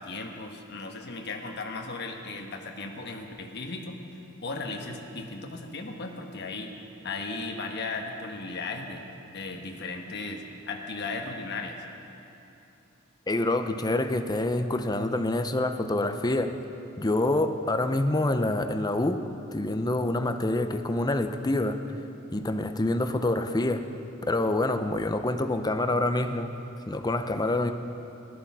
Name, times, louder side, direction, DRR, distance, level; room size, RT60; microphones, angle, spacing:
voice 1, 0.0-4.0 4.4-6.7 7.0-9.0 9.3-11.8, left 3 dB, 55° left, 2 dB, 1.2 m, -36 dB
voice 2, 13.3-16.5 17.0-19.2 19.5-21.8 22.3-23.8 24.2-26.5 26.9-27.7, left 2 dB, 20° left, 8 dB, 0.6 m, -26 dB
15.5 x 11.5 x 5.9 m, 2.9 s
head